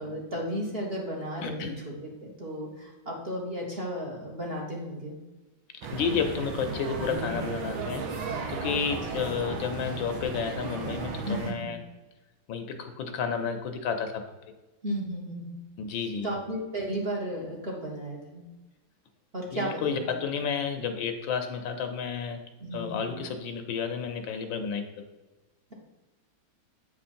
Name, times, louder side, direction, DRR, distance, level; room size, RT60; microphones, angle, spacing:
voice 1, 0.0-1.6 1.8-5.2 7.1-7.3 9.1-9.2 11.2-11.7 14.8-15.6 16.2-18.4 19.3-20.0 22.6-23.1, equal, 35° right, -3 dB, 1.5 m, -34 dB
voice 2, 1.4-1.8 5.9-8.0 8.5-11.8 12.5-14.2 15.8-16.4 19.5-22.4 22.7-24.8, left 6 dB, 75° left, 6 dB, 1.5 m, -31 dB
sound 1, 5.8-11.5, right 5 dB, 85° right, 1.8 m, -35 dB
8.3 x 4.6 x 4.3 m, 1.1 s
omnidirectional pair, 2.2 m